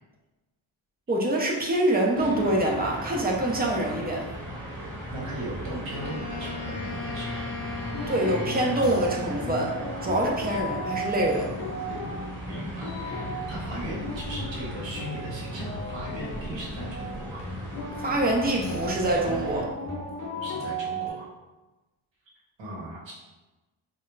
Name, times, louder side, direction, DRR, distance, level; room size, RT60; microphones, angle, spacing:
voice 1, 1.1-4.3 8.1-9.8 10.0-11.5 18.0-19.7, right 1 dB, 20° right, -1 dB, 0.4 m, -25 dB
sound 1, 2.1-19.6, equal, 5° left, 0.9 m, -37 dB
voice 2, 5.1-7.4 12.5-17.4 20.3-21.3 22.6-23.1, right 1 dB, 65° right, -4 dB, 1.0 m, -38 dB
Wind instrument woodwind instrument, 5.9-9.4, left 5 dB, 75° left, 0.7 m, -38 dB
sound 2, 7.8-21.1, right 1 dB, 35° left, 0.5 m, -36 dB
2.3 x 2.0 x 3.0 m, 1.1 s
cardioid pair, 100°, 47 cm